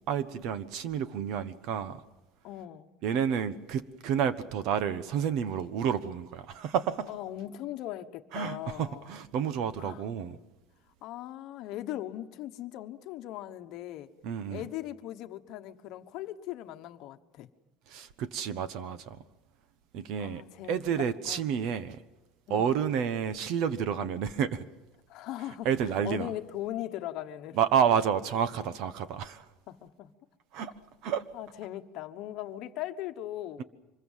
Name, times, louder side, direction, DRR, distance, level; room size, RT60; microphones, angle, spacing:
voice 1, 0.1-2.0 3.0-7.1 8.3-10.4 14.2-14.7 17.9-19.2 19.9-22.0 22.5-24.6 25.6-26.3 27.5-29.5 30.5-30.7 31.0-31.2, right 8 dB, 55° right, 1.2 m, -30 dB
voice 2, 2.4-2.9 7.1-9.1 9.8-10.1 11.0-14.1 14.5-17.5 20.2-21.5 22.5-22.7 25.1-25.7 26.0-27.6 29.7-30.1 31.3-33.6, left 13 dB, 50° left, 1.2 m, -39 dB
25.5 x 22.0 x 7.4 m
cardioid pair, 170°, 0 cm